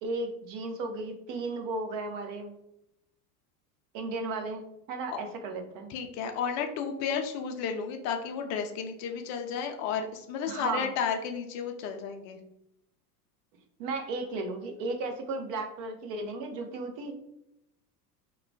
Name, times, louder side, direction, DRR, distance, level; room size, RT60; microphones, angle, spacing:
voice 1, 0.0-2.5 3.9-4.6 4.9-5.9 10.5-10.9 13.8-17.1, right 3 dB, 45° right, 4 dB, 0.7 m, -34 dB
voice 2, 5.9-12.4, left 6 dB, 40° left, 5 dB, 0.4 m, -32 dB
2.3 x 2.1 x 3.3 m, 0.82 s
figure-of-eight pair, 80°, 47 cm